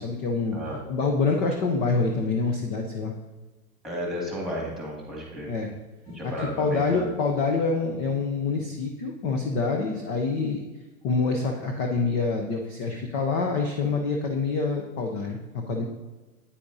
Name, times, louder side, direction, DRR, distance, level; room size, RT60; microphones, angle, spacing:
voice 1, 0.0-0.6 0.9-3.1 5.5-5.7 6.2-10.6 11.0-15.8, left 4 dB, 20° left, 2 dB, 0.5 m, -26 dB
voice 2, 3.8-5.5 6.1-7.2, equal, ahead, -3 dB, 2.1 m, -33 dB
8.8 x 8.3 x 2.7 m, 1.2 s
hypercardioid pair, 140°, 46 cm